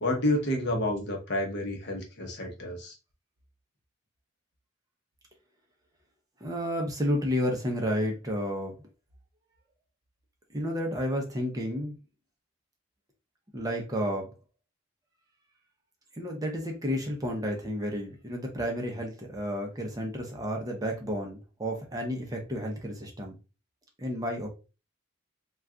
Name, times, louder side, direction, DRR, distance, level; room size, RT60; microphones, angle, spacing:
voice 1, 0.0-2.9, left 1 dB, 55° left, 0.7 m, -29 dB
voice 2, 6.4-8.8 10.5-12.0 13.5-14.3 16.1-23.3 24.0-24.5, equal, 15° right, 0.5 m, -31 dB
2.3 x 2.3 x 3.6 m
head